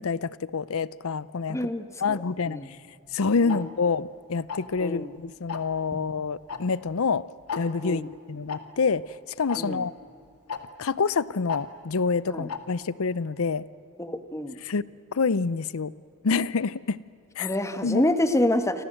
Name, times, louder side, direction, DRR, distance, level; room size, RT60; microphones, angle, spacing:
voice 1, 0.0-1.7 2.0-2.6 3.1-7.3 7.6-9.9 10.8-13.7 14.6-14.8 15.1-15.9 16.2-17.0 17.4-17.5 17.8-18.1, left 4 dB, 65° left, 20 dB, 0.6 m, -27 dB
voice 2, 1.5-2.2 2.5-2.7 3.4-3.7 4.8-5.1 7.8-8.1 9.6-9.8 12.3-12.5 14.0-14.6 17.4-18.8, left 1 dB, 15° left, 10 dB, 1.5 m, -27 dB
Tick-tock, 3.5-3.6 4.5-4.8 5.5-5.7 6.5-6.6 6.9-7.0 7.5-7.6 8.5-8.6 9.5-9.6 10.5-10.6 11.5-11.6 12.5-12.6, left 6 dB, 90° left, 2.1 m, -32 dB
29.5 x 25.5 x 7.8 m, 2.6 s
head